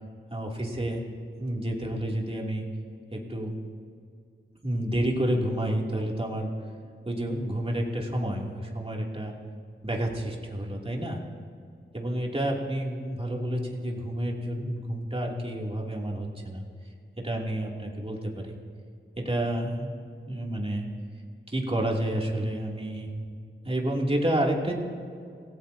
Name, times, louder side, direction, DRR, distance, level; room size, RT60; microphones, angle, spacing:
voice 1, 0.3-1.0 1.4-2.7 3.1-3.6 4.6-6.5 7.0-9.3 9.8-11.2 11.9-16.6 17.2-18.6 19.2-20.0 20.2-20.9 21.5-23.1 23.6-24.7, right 1 dB, 30° right, -2 dB, 2.8 m, -29 dB
26.5 x 17.5 x 2.8 m, 2.3 s
wide cardioid pair, 70°, 21 cm